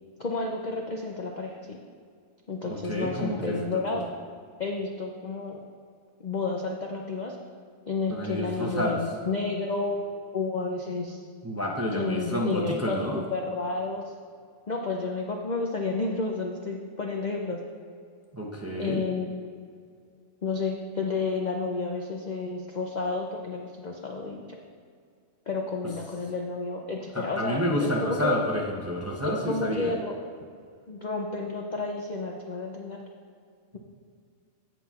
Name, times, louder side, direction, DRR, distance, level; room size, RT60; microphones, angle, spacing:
voice 1, 0.2-1.8 2.5-4.1 4.6-5.6 6.2-7.4 7.9-11.2 11.9-14.1 14.7-17.6 18.8-19.3 20.4-24.6 25.5-28.3 29.4-30.1 30.9-33.0, left 3 dB, 50° left, 1 dB, 0.5 m, -31 dB
voice 2, 2.6-4.0 8.1-9.0 11.4-13.2 18.3-19.0 27.1-29.9, equal, 15° right, -1 dB, 0.5 m, -29 dB
16.5 x 5.8 x 2.4 m, 2.2 s
omnidirectional pair, 1.5 m